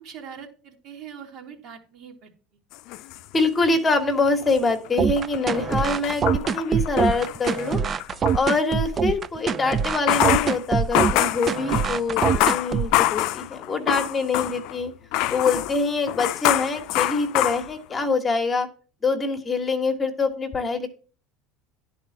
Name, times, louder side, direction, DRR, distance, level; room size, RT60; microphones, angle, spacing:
voice 1, 0.0-2.3, right 7 dB, 55° right, 1 dB, 2.5 m, -42 dB
sound 1, 2.7-3.9 4.3-8.4 9.9-14.8 15.1-18.1, left 16 dB, 65° left, 0.5 m, -26 dB
voice 2, 3.3-6.2 6.5-7.8 8.3-14.9 15.3-18.7 19.0-20.9, left 3 dB, 20° left, 5 dB, 1.4 m, -24 dB
sound 2, 5.0-13.0, right 6 dB, 30° right, 0.4 m, -24 dB
10.5 x 4.3 x 7.1 m, 0.39 s
supercardioid pair, 115°, 0 cm